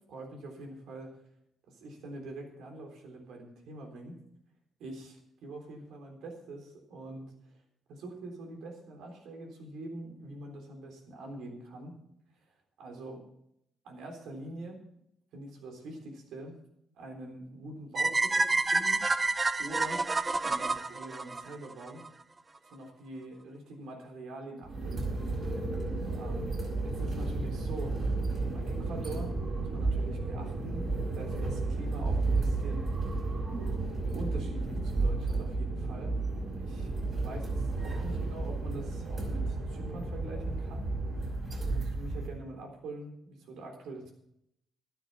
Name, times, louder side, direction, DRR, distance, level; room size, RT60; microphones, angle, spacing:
voice 1, 0.1-1.1 1.7-4.1 4.8-7.3 7.9-12.0 12.8-13.2 13.8-14.8 15.3-16.6 17.0-19.0 19.6-20.1 20.4-22.0 22.7-25.0 25.8-26.6 26.8-28.0 28.3-32.9 34.1-36.2 36.5-41.0 41.6-44.1, right 2 dB, 80° right, 3 dB, 3.7 m, -44 dB
sound 1, 18.0-22.1, right 3 dB, 25° right, 0.7 m, -28 dB
sound 2, 24.6-42.3, right 3 dB, 40° right, 5.2 m, -32 dB
12.0 x 11.5 x 5.6 m, 0.75 s
cardioid pair, 90°, 0 cm